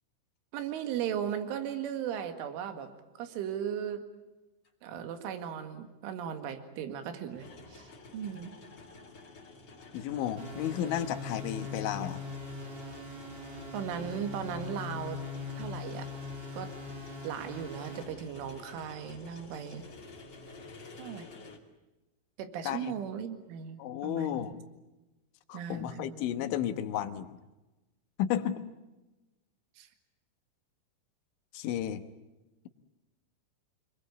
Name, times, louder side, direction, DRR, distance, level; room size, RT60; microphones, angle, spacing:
voice 1, 0.5-2.9 3.2-4.0 4.8-7.5 7.7-8.5 13.7-15.2 15.6-16.1 16.5-16.7 17.2-19.9 21.0-21.3 22.4-24.6 25.5-26.2 29.8-29.9, right 8 dB, 75° right, 8 dB, 4.4 m, -37 dB
sound 1, 4.6-4.7 7.3-21.6, left 3 dB, 30° left, 2.4 m, -51 dB
voice 2, 9.9-12.2 22.7-23.0 23.8-24.6 25.5-27.4 28.2-28.7 31.5-32.0, left 10 dB, 75° left, 10 dB, 3.5 m, -33 dB
sound 2, 10.4-18.0, left 4 dB, 40° right, 6.0 m, -41 dB
27.5 x 22.0 x 8.4 m, 1.1 s
omnidirectional pair, 5.7 m